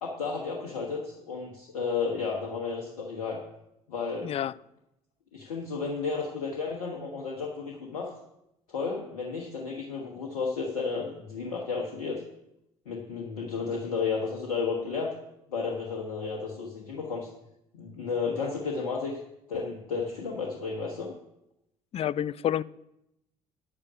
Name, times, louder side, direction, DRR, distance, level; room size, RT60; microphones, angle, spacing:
voice 1, 0.0-3.4 3.9-4.3 5.3-8.1 8.7-12.2 12.8-15.1 15.5-17.3 17.7-19.2 19.5-21.1, left 5 dB, 70° left, 1.3 m, -32 dB
voice 2, 4.2-4.5 21.9-22.6, left 10 dB, 35° left, 0.4 m, -28 dB
9.7 x 8.8 x 5.1 m
figure-of-eight pair, 55°, 19 cm